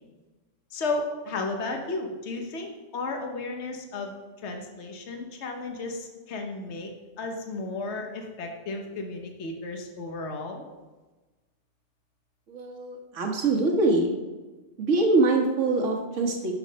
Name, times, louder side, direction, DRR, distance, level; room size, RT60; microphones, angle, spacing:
voice 1, 0.7-4.2 4.4-6.9 7.2-10.6, left 3 dB, 60° left, 3 dB, 1.4 m, -33 dB
voice 2, 12.5-14.1 14.8-16.5, right 3 dB, 70° right, 2 dB, 1.6 m, -24 dB
11.0 x 5.8 x 5.2 m, 1.2 s
omnidirectional pair, 1.3 m